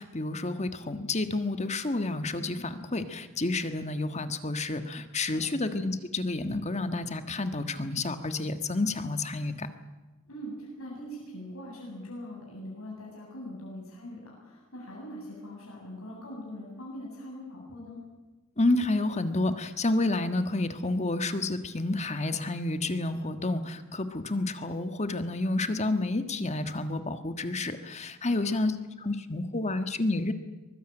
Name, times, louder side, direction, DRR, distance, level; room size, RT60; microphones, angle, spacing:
voice 1, 0.0-9.7 18.6-28.7 29.0-30.3, left 2 dB, 30° left, 9 dB, 1.5 m, -30 dB
voice 2, 5.3-5.7 10.3-18.0 28.2-28.7, left 1 dB, 80° left, -3 dB, 8.0 m, -42 dB
23.5 x 21.5 x 9.0 m, 1.2 s
head